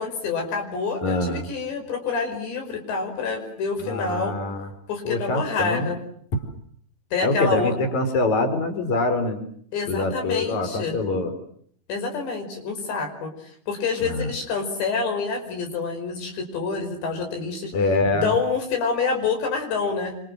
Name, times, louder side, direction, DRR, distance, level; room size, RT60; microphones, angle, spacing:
voice 1, 0.0-4.4 4.9-6.0 7.1-7.8 9.7-11.0 11.9-17.7 18.1-20.2, left 4 dB, 70° left, 5 dB, 7.3 m, -27 dB
voice 2, 1.0-1.5 3.8-4.7 5.1-5.9 7.2-9.4 9.9-11.3 14.0-14.3 17.7-18.4, left 2 dB, 40° left, 8 dB, 5.2 m, -24 dB
28.5 x 25.5 x 7.6 m, 0.64 s
omnidirectional pair, 5.3 m